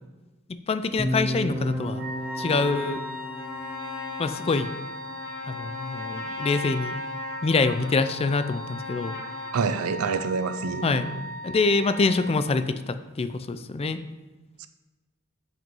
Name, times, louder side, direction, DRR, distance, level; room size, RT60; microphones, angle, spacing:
voice 1, 0.7-2.1 2.4-3.0 4.2-4.7 5.5-6.9 7.4-9.2 10.8-11.1 11.4-14.0, left 3 dB, 30° left, 11 dB, 0.4 m, -25 dB
sound 1, 1.0-5.1, equal, 20° right, 0.7 m, -33 dB
Trumpet, 1.5-9.6, left 3 dB, 65° left, 1.5 m, -39 dB
Wind instrument woodwind instrument, 1.9-12.7, equal, 70° right, 1.4 m, -39 dB
voice 2, 9.5-11.2 14.6-14.7, right 4 dB, 85° right, 11 dB, 0.5 m, -27 dB
5.9 x 5.3 x 5.3 m, 1.2 s
head